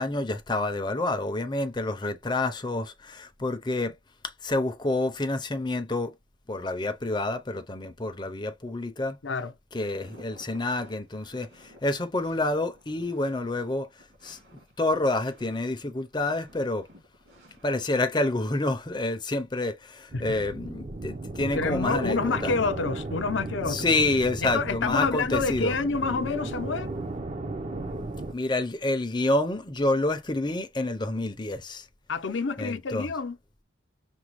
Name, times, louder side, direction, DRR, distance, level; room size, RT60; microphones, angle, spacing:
voice 1, 0.0-3.9 4.2-6.1 6.5-9.2 9.7-13.9 14.2-14.4 14.8-16.9 17.6-22.5 23.7-25.7 28.3-31.9 32.6-33.1, left 2 dB, 20° left, 0.6 m, -28 dB
sound 1, 9.9-17.8, equal, 65° right, 2.3 m, -56 dB
sound 2, 20.1-28.3, right 2 dB, 35° right, 0.6 m, -35 dB
voice 2, 21.5-23.9 24.4-26.9 32.1-33.4, left 4 dB, 70° left, 0.7 m, -28 dB
6.1 x 2.2 x 3.1 m
head